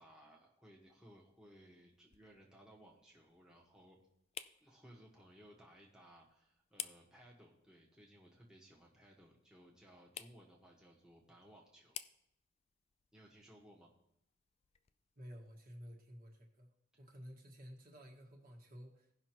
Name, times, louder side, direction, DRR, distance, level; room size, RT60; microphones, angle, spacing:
voice 1, 0.0-4.0 4.6-12.0 13.1-13.9 16.9-17.0, equal, 5° right, -3 dB, 1.3 m, -61 dB
sound 1, 0.8-15.6, left 10 dB, 30° left, 0.3 m, -56 dB
voice 2, 15.1-16.7 17.0-19.1, equal, 50° right, 0 dB, 1.6 m, -53 dB
17.0 x 5.7 x 3.0 m, 0.78 s
head